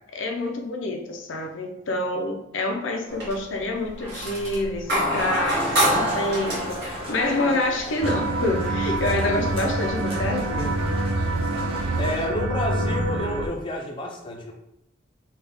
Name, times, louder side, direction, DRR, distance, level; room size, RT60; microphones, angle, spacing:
voice 1, 0.1-10.8, left 2 dB, 80° left, 3 dB, 0.5 m, -27 dB
sound 1, 3.1-3.5 3.9-8.0 9.6-9.7 10.2-10.9, equal, 60° right, 1.2 m, -27 dB
sound 2, 5.5-12.3, right 1 dB, 30° right, 0.9 m, -36 dB
sound 3, 8.0-13.5, right 2 dB, 85° right, 0.4 m, -26 dB
voice 2, 12.0-14.5, left 1 dB, 25° left, 1 dB, 0.4 m, -29 dB
3.4 x 2.4 x 3.3 m, 0.78 s
head